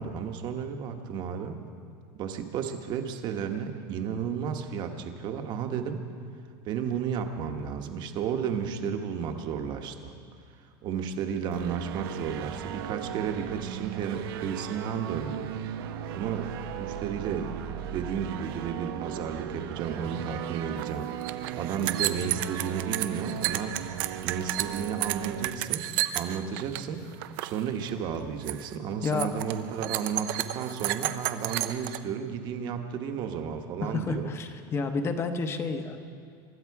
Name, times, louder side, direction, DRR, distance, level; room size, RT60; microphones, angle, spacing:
voice 1, 0.0-1.6 2.1-6.0 6.6-10.1 10.8-15.5 16.1-17.6 17.9-21.1 21.6-23.8 24.2-25.9 26.1-27.0 27.4-34.3, right 7 dB, 40° right, 6 dB, 1.2 m, -33 dB
sound 1, 11.5-25.5, right 9 dB, 90° right, 1.0 m, -37 dB
sound 2, 20.8-20.9 21.1-26.8 27.1-27.6 27.9-28.2 28.5-28.7 29.1-32.0, right 15 dB, 65° right, 0.6 m, -32 dB
voice 2, 33.9-36.0, left 4 dB, 20° left, 7 dB, 0.9 m, -30 dB
24.5 x 12.0 x 4.7 m, 2.3 s
supercardioid pair, 160°, 12 cm